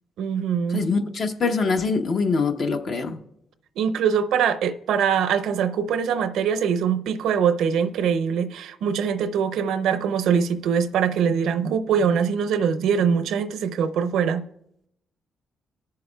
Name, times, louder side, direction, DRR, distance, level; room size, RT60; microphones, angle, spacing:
voice 1, 0.2-0.9 3.8-14.5, right 7 dB, 80° right, 0.5 m, -23 dB
voice 2, 0.7-3.2, left 4 dB, 55° left, 0.8 m, -24 dB
20.0 x 6.7 x 2.3 m
cardioid pair, 90°, 0 cm